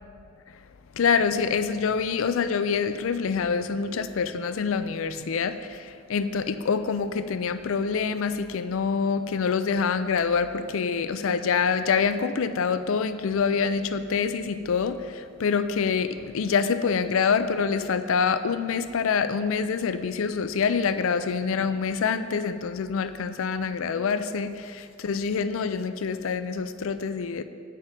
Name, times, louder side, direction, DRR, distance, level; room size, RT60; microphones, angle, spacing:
voice 1, 0.9-27.4, left 5 dB, 65° left, 11 dB, 0.4 m, -26 dB
10.0 x 5.7 x 7.4 m, 2.3 s
head